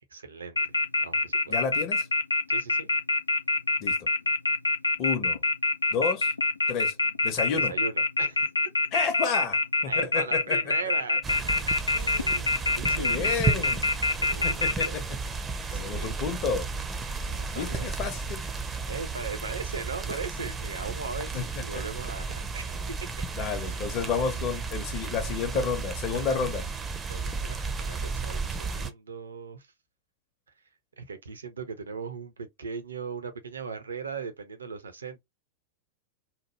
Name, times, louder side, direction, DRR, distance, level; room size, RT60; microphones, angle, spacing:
voice 1, 0.1-1.6 2.5-2.9 7.5-8.5 9.8-11.2 11.6-13.7 14.2-15.0 15.7-16.1 17.2-17.9 18.8-23.3 23.6-24.0 27.1-29.7 31.0-35.2, right 5 dB, 70° right, 0.7 m, -39 dB
Telephone, 0.6-14.9, left 2 dB, 80° left, 0.3 m, -25 dB
voice 2, 1.5-2.1 3.8-4.1 5.0-5.4 5.9-6.3 6.7-7.0 7.2-7.8 8.9-10.7 12.8-13.9 14.4-15.0 15.7-16.7 17.5-18.5 21.3-21.5 23.3-26.7, left 6 dB, 40° left, 0.7 m, -30 dB
sound 1, 11.2-28.9, right 4 dB, 20° right, 0.5 m, -33 dB
3.0 x 2.1 x 3.0 m
figure-of-eight pair, 90°, 0 cm